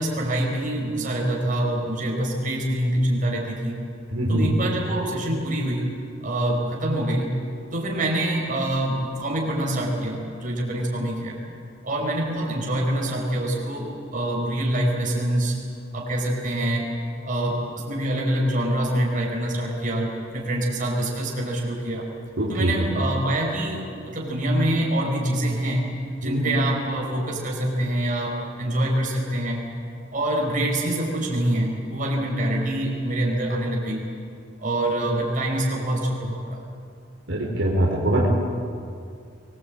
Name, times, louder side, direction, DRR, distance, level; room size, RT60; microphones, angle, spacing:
voice 1, 0.0-3.8 4.3-5.9 6.2-7.4 7.7-11.4 11.8-15.6 15.9-16.9 17.2-22.1 22.5-25.9 26.2-29.6 30.1-34.1 34.6-36.6, right 1 dB, 45° right, -1 dB, 5.4 m, -25 dB
voice 2, 4.1-4.5 22.4-22.7 26.2-26.4 37.3-38.3, right 1 dB, 65° right, -2 dB, 3.8 m, -22 dB
24.5 x 19.5 x 8.8 m, 2.3 s
head